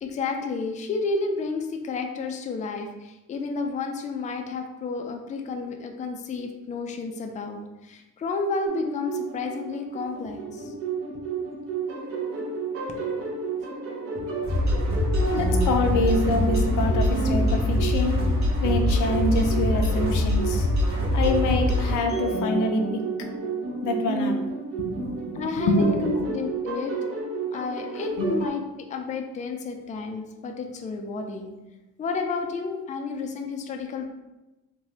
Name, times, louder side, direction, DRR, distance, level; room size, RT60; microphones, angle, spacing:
voice 1, 0.0-10.8 11.1-11.4 14.2-14.3 25.3-26.9 27.5-28.6 28.9-31.5 32.0-34.1, left 4 dB, 25° left, 4 dB, 0.3 m, -31 dB
sound 1, 8.6-28.5, right 4 dB, 50° right, 0.7 m, -31 dB
sound 2, 14.4-21.9, left 1 dB, 70° right, 0.9 m, -23 dB
voice 2, 15.3-18.2 18.6-20.7 21.1-23.0 23.8-24.4 24.9-25.8 26.0-26.2 28.2-28.3, left 2 dB, 80° left, 4 dB, 0.5 m, -26 dB
3.2 x 2.2 x 2.8 m, 1.0 s
cardioid pair, 90°, 30 cm